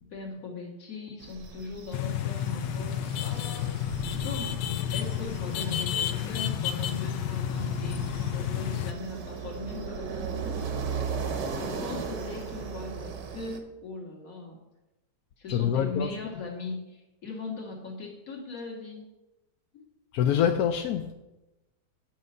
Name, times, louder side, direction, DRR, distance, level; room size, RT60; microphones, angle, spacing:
voice 1, 0.1-4.6 4.9-10.7 11.6-14.6 15.4-19.1 19.7-19.8, left 3 dB, 55° left, 1 dB, 2.0 m, -39 dB
sound 1, 1.2-13.6, right 5 dB, 80° right, 1.6 m, -37 dB
sound 2, 1.9-8.9, left 9 dB, 90° left, 1.3 m, -31 dB
voice 2, 15.5-16.1 20.1-21.1, left 9 dB, 70° left, 6 dB, 1.0 m, -25 dB
9.0 x 5.6 x 5.4 m, 1.0 s
omnidirectional pair, 1.8 m